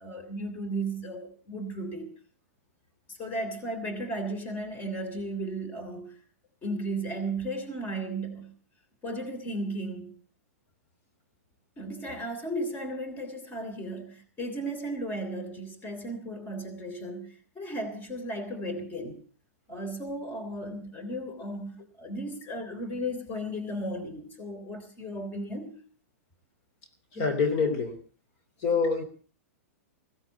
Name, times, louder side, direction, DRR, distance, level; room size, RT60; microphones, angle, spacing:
voice 1, 0.0-2.1 3.1-6.2 6.6-8.5 9.0-10.1 11.8-19.2 19.7-25.8, right 1 dB, 25° left, 3.3 m, -35 dB
voice 2, 27.1-28.0 28.6-29.0, left 5 dB, 45° left, 3.4 m, -26 dB
16.5 x 15.5 x 4.6 m
hypercardioid pair, 120°, 8 cm